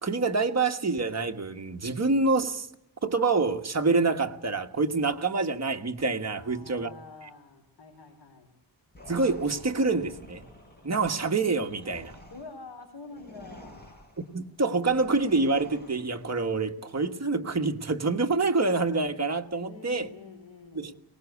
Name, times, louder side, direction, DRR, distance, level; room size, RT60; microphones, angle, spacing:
voice 1, 0.0-2.7 3.0-6.9 9.1-10.5 10.8-12.1 14.3-20.1 20.7-20.9, right 3 dB, 35° right, 1.5 m, -26 dB
voice 2, 6.4-8.5 12.3-14.0 19.6-21.0, left 3 dB, 70° left, 4.2 m, -47 dB
sound 1, 8.9-16.3, left 1 dB, 20° left, 5.9 m, -50 dB
23.0 x 19.5 x 8.3 m
wide cardioid pair, 145°, 43 cm